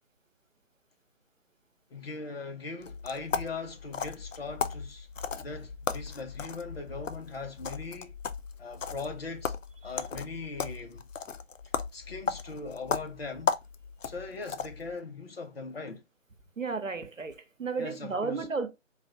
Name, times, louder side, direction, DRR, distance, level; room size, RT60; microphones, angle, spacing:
voice 1, 1.9-5.1 5.4-8.1 8.6-9.5 9.8-11.1 11.9-13.5 14.0-16.0 17.8-18.4, left 3 dB, 50° left, 0.9 m, -40 dB
sound 1, 2.8-14.9, left 6 dB, 75° left, 0.5 m, -36 dB
voice 2, 16.6-18.7, right 4 dB, 80° right, 1.0 m, -33 dB
3.9 x 2.4 x 2.8 m
figure-of-eight pair, 145°, 38 cm